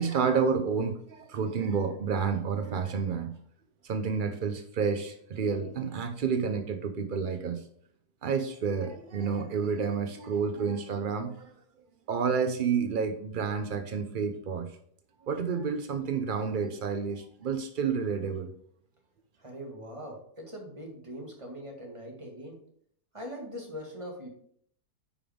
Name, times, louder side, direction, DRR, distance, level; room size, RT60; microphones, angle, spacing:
voice 1, 0.0-3.3 3.8-7.6 8.2-11.5 12.1-14.7 15.3-18.5, right 6 dB, 75° right, 7 dB, 0.4 m, -30 dB
voice 2, 19.4-22.6 23.1-24.3, equal, 20° right, 0 dB, 2.0 m, -41 dB
9.7 x 5.1 x 3.6 m, 0.63 s
omnidirectional pair, 1.8 m